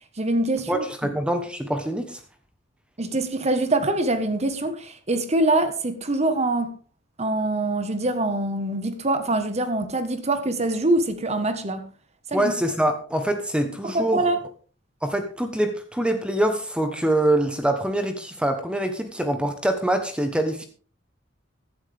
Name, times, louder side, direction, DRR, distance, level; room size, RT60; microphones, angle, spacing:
voice 1, 0.2-0.8 3.0-6.7 7.2-11.8 12.3-12.5 13.8-14.4, right 2 dB, 35° right, 1.4 m, -24 dB
voice 2, 0.7-2.2 12.3-14.2 15.0-20.7, right 1 dB, 5° right, 1.2 m, -24 dB
15.5 x 11.5 x 3.6 m
head